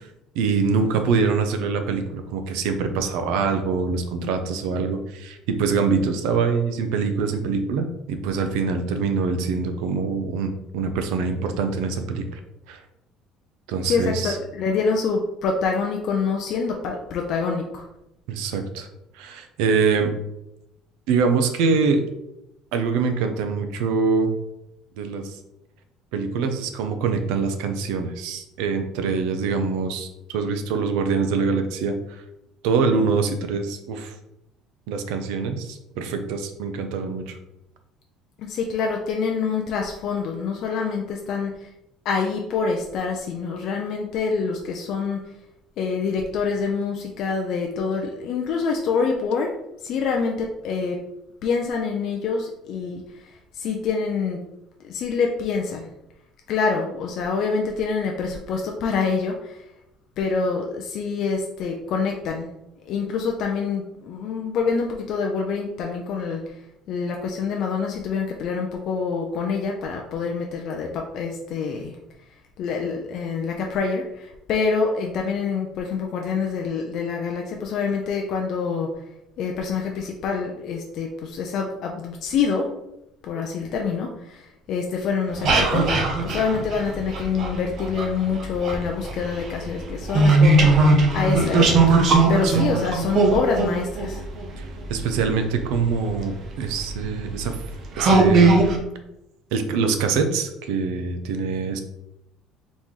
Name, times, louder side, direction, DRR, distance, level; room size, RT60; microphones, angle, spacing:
voice 1, 0.3-12.4 12.7-12.8 13.7-14.4 18.3-18.9 19.1-20.1 21.1-22.0 22.7-24.3 25.0-25.4 26.1-32.2 32.6-34.1 34.9-37.4 92.4-92.7 94.6-97.6 98.0-98.5 99.5-101.8, right 5 dB, 85° right, 7 dB, 0.6 m, -24 dB
voice 2, 13.9-17.8 38.4-41.5 42.1-45.2 45.8-49.5 49.8-51.0 51.4-53.0 53.6-54.4 54.8-55.9 56.5-59.6 60.2-62.5 62.9-66.4 66.9-71.9 72.6-78.9 79.4-82.7 83.2-84.4 84.7-92.0 92.3-94.2, left 5 dB, 50° left, 1 dB, 0.5 m, -26 dB
sound 1, 85.3-88.1 88.4-95.2 96.1-96.2 96.8-97.0 97.5-97.6 98.0-98.8, right 3 dB, 40° right, 0.7 m, -18 dB
4.0 x 3.0 x 3.6 m, 0.86 s
cardioid pair, 170°, 0 cm